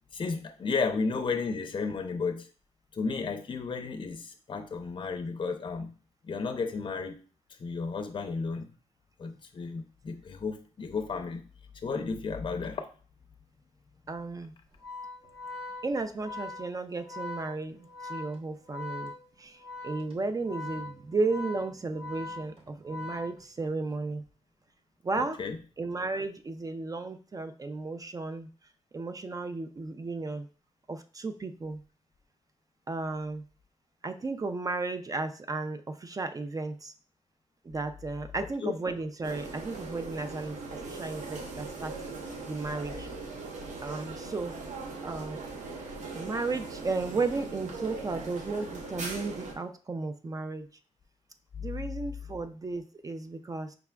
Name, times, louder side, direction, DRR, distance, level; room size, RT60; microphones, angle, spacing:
voice 1, 0.1-2.5 2.9-5.9 6.2-7.2 7.6-8.7 9.2-11.5 11.8-12.9 25.2-25.6 38.6-38.8, left 4 dB, 40° left, 5 dB, 0.5 m, -33 dB
voice 2, 14.1-14.5 15.8-19.1 19.4-24.2 25.0-25.4 25.8-28.5 28.9-30.5 30.9-31.8 32.9-33.4 34.0-36.9 37.6-41.9 42.5-43.1 43.8-44.6 45.0-45.4 46.1-50.7 51.6-53.8, right 3 dB, 30° right, 8 dB, 0.3 m, -34 dB
Organ, 14.7-23.9, left 3 dB, 50° right, 0.9 m, -42 dB
sound 1, 39.2-49.5, right 3 dB, 90° right, 0.7 m, -40 dB
4.9 x 3.4 x 2.2 m, 0.39 s
wide cardioid pair, 110°, 12 cm